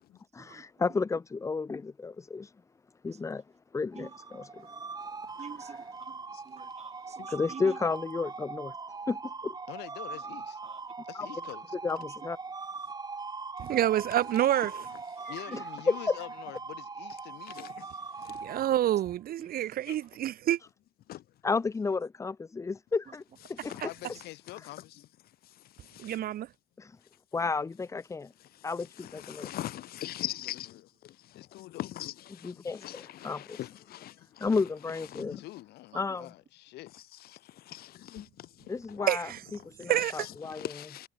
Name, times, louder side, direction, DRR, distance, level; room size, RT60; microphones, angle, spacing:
voice 1, 0.3-2.5 3.0-3.4 3.7-4.7 7.3-8.8 9.1-9.6 11.1-11.3 11.8-12.4 15.5-15.6 15.9-16.2 21.4-23.2 23.5-23.7 26.8-27.0 27.3-28.3 28.6-29.5 32.4-33.6 34.4-35.4 35.9-36.3 38.7-39.3 39.6-40.7, left 4 dB, 20° left, 0.6 m, -32 dB
voice 2, 3.1-3.4 4.0-4.1 4.6-4.8 5.4-7.8 10.1-10.4 10.6-10.8 12.0-12.1 15.2-15.6 19.4-19.5 23.1-23.2 34.4-34.5 35.9-36.1, right 7 dB, 40° right, 5.3 m, -49 dB
sound 1, 3.9-19.2, right 4 dB, 25° right, 2.5 m, -41 dB
voice 3, 9.7-10.6 11.1-11.8 15.3-17.8 23.8-25.0 29.9-30.3 31.3-31.9 35.1-37.5, left 17 dB, 80° left, 5.1 m, -46 dB
voice 4, 13.6-14.9 18.4-20.6 26.0-26.5 39.1-39.4 39.9-40.3, right 12 dB, 60° right, 1.7 m, -28 dB
voice 5, 17.5-18.5 19.9-20.0 21.1-21.2 23.4-23.9 25.4-26.2 28.4-34.6 34.9-35.4 36.9-39.1 39.8-41.1, left 13 dB, 65° left, 1.1 m, -43 dB
cardioid pair, 110°, 17 cm